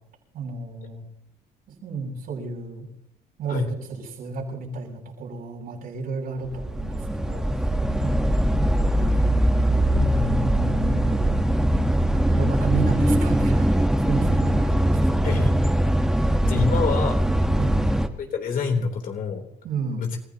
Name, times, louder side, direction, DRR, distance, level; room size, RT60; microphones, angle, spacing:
voice 1, 0.3-1.0 1.8-2.8 3.4-7.4 8.0-8.3 8.9-9.3 10.0-11.3 12.3-15.3 16.4-16.6 17.5-17.8 19.6-20.1, right 3 dB, 65° right, -2 dB, 7.4 m, -31 dB
sound 1, 6.4-18.1, right 1 dB, 5° right, 1.2 m, -21 dB
voice 2, 16.4-17.2 18.2-19.4 20.0-20.2, left 5 dB, 55° left, 2 dB, 3.5 m, -26 dB
29.5 x 15.5 x 3.0 m, 0.72 s
cardioid pair, 110°, 17 cm